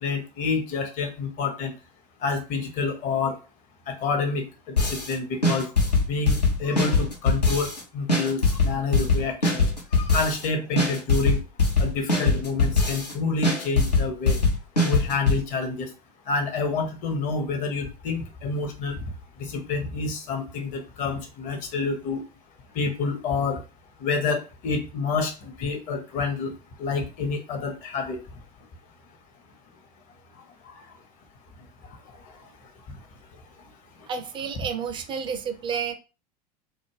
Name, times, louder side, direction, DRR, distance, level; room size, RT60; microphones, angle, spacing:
voice 1, 0.0-1.7 2.2-3.4 3.9-5.7 6.1-9.6 10.0-11.4 11.8-14.4 14.8-15.9 16.3-19.0 19.4-22.2 22.7-23.6 24.0-26.5 26.8-28.2 30.7-30.8, left 4 dB, 40° left, 0.8 m, -28 dB
sound 1, 4.8-5.1 5.4-7.8 8.1-10.5 10.8-13.1 13.4-15.4, left 3 dB, 85° left, 0.8 m, -22 dB
voice 2, 34.1-35.9, right 6 dB, 25° right, 0.4 m, -30 dB
2.4 x 2.0 x 3.2 m
figure-of-eight pair, 80°, 21 cm